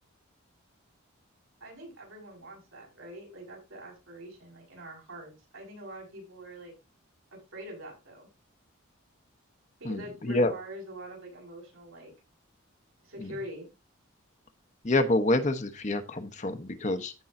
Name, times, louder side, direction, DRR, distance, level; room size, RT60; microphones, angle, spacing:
voice 1, 1.6-6.7 7.3-8.3 9.8-12.1 13.0-13.7, equal, 85° right, -1 dB, 5.7 m, -44 dB
voice 2, 9.8-10.5 13.2-13.3 14.8-17.1, left 2 dB, 35° left, 8 dB, 0.9 m, -27 dB
14.5 x 5.4 x 2.6 m, 0.26 s
head